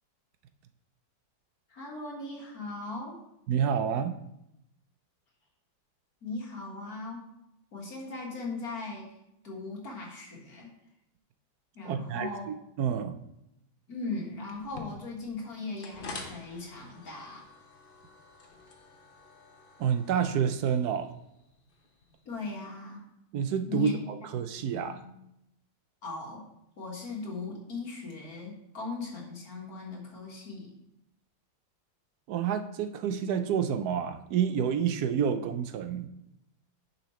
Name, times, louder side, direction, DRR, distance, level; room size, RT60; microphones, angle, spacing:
voice 1, 1.7-3.2 6.2-7.3 7.7-9.1 9.4-10.7 11.8-12.4 13.9-17.4 22.3-23.0 23.7-24.0 24.5-25.1 26.0-26.5 26.8-30.8, left 3 dB, 60° left, -2 dB, 2.2 m, -38 dB
voice 2, 3.5-4.2 11.8-13.2 19.8-21.1 23.3-25.0 32.3-36.1, right 7 dB, 70° right, 8 dB, 1.1 m, -29 dB
sound 1, 14.5-22.4, left 3 dB, 40° left, 0.9 m, -48 dB
10.0 x 5.6 x 3.1 m, 0.82 s
omnidirectional pair, 1.9 m